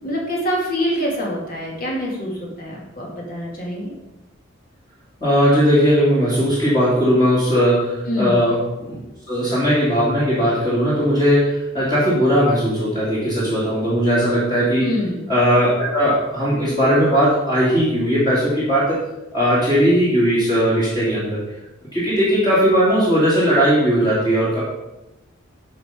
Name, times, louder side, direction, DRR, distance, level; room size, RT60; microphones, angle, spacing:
voice 1, 0.0-3.9 8.0-8.4 14.8-15.2, equal, 45° left, -2 dB, 2.6 m, -25 dB
voice 2, 5.2-9.0 9.3-14.9 15.3-19.0 19.3-21.4 21.9-24.6, equal, 20° left, -10 dB, 2.8 m, -18 dB
10.5 x 5.7 x 5.1 m, 0.94 s
head